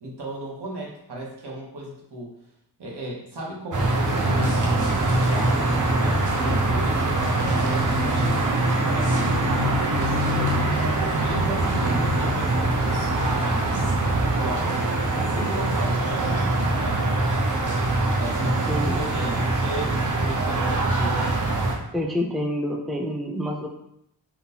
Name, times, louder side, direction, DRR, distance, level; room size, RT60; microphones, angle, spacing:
voice 1, 0.0-2.4 2.8-7.2 7.6-10.7 11.1-13.9 14.3-17.1 18.2-21.3, right 1 dB, 70° right, -2 dB, 1.0 m, -35 dB
sound 1, 3.7-21.8, right 2 dB, 45° right, 0.8 m, -23 dB
voice 2, 18.7-19.0 21.9-23.7, left 1 dB, ahead, 0 dB, 0.5 m, -27 dB
3.7 x 2.4 x 2.8 m, 0.76 s
cardioid pair, 45°, 42 cm